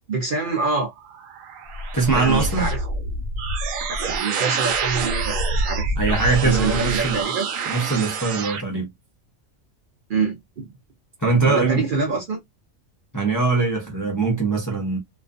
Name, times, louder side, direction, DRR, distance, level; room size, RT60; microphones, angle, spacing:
voice 1, 0.1-0.9 2.1-2.8 3.9-6.2 6.4-7.5 10.1-10.7 11.4-12.4, right 4 dB, 55° right, 0.7 m, -25 dB
sound 1, 0.9-8.6, right 3 dB, 90° right, 1.0 m, -26 dB
voice 2, 1.9-2.7 6.0-7.2 7.7-8.9 11.2-11.9 13.1-15.0, right 4 dB, 20° left, 0.5 m, -22 dB
2.4 x 2.3 x 2.4 m
omnidirectional pair, 1.3 m